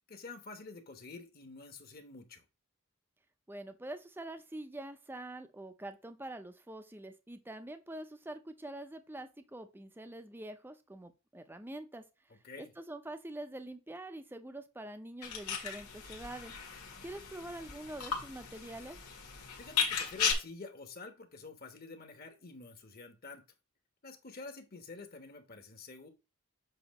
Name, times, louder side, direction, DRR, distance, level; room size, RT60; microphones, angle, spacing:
voice 1, 0.0-2.4 12.3-12.7 19.6-23.4 24.0-26.1, left 3 dB, 40° left, 6 dB, 1.1 m, -48 dB
voice 2, 3.5-12.0 12.6-16.5 17.0-19.0, right 1 dB, 10° right, 8 dB, 0.5 m, -45 dB
sound 1, 15.2-20.3, left 6 dB, 90° left, 1.9 m, -36 dB
7.9 x 2.8 x 5.1 m, 0.28 s
head